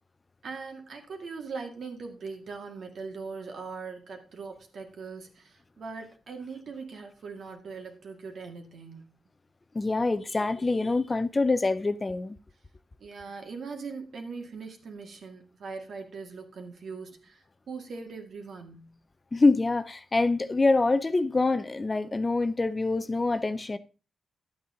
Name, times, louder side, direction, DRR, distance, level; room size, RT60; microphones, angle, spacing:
voice 1, 0.4-9.1 13.0-18.9, right 4 dB, 65° right, 2.2 m, -41 dB
voice 2, 9.7-12.4 19.3-23.8, left 3 dB, 25° left, 0.6 m, -25 dB
11.5 x 8.4 x 3.8 m
cardioid pair, 105°, 0 cm